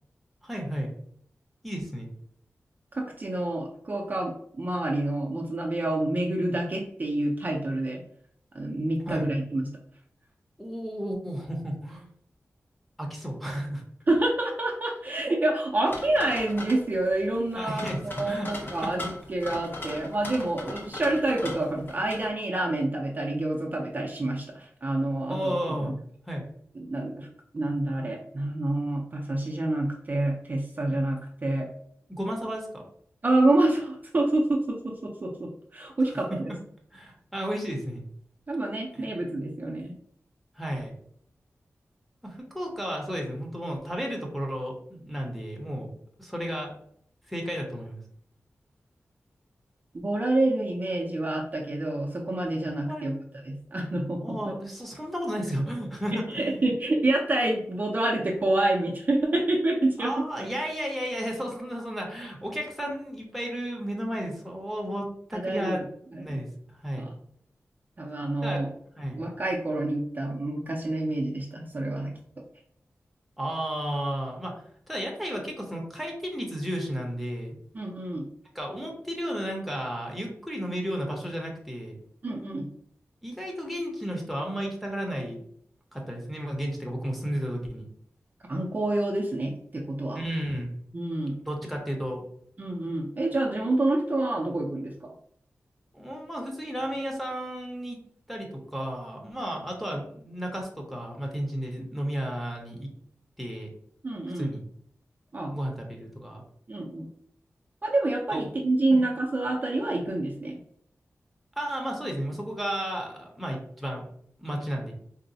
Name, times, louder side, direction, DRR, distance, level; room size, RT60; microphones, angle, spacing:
voice 1, 0.4-0.9 1.6-2.1 9.1-9.3 10.6-12.0 13.0-13.8 17.5-18.9 25.3-25.9 26.3-26.4 32.1-32.8 36.9-38.0 38.9-39.1 40.6-40.9 42.2-45.9 46.2-46.8 47.3-48.0 52.6-53.2 54.2-56.6 60.0-65.8 66.2-66.5 66.7-67.1 68.4-68.6 69.0-69.2 73.4-77.6 78.5-81.9 83.2-85.4 85.9-87.9 90.1-90.7 91.5-92.2 95.9-98.0 98.3-102.9 103.4-103.7 104.3-104.6 105.5-106.4 108.3-108.5 108.9-109.0 111.6-114.0 114.4-114.9, equal, ahead, -1 dB, 0.7 m, -33 dB
voice 2, 2.9-8.0 8.5-9.7 14.1-25.9 26.8-27.3 27.5-31.7 33.2-36.5 38.5-39.9 49.9-53.1 53.4-54.4 56.1-60.1 65.3-65.8 66.1-66.4 67.0-67.1 68.0-68.7 69.1-72.1 77.7-78.2 82.2-82.7 88.5-90.2 90.9-91.4 92.6-95.1 104.0-104.5 105.3-105.5 106.7-107.1 107.8-110.6, right 2 dB, 35° right, -1 dB, 0.4 m, -27 dB
sound 1, 15.9-22.3, left 1 dB, 45° left, 0.6 m, -39 dB
3.9 x 2.1 x 2.6 m, 0.65 s
wide cardioid pair, 110°, 5 cm